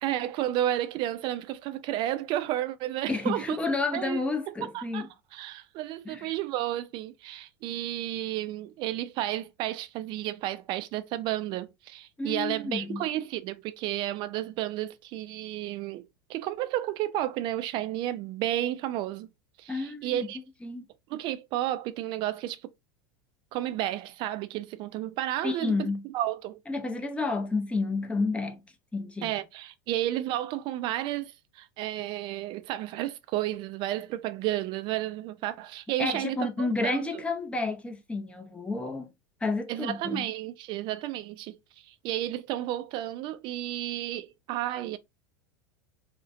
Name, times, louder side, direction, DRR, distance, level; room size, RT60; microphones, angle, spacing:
voice 1, 0.0-3.6 3.9-4.2 4.5-16.0 16.3-19.3 19.6-20.4 21.1-22.7 23.5-26.6 29.2-37.2 39.7-45.0, right 13 dB, 45° right, 0.3 m, -32 dB
voice 2, 3.1-5.1 6.1-6.3 12.2-13.1 19.7-20.2 20.6-20.9 25.4-26.0 26.7-28.6 28.9-29.3 36.0-39.1 39.4-40.3, left 3 dB, 10° left, 0.5 m, -30 dB
2.4 x 2.1 x 2.4 m
hypercardioid pair, 85°, 11 cm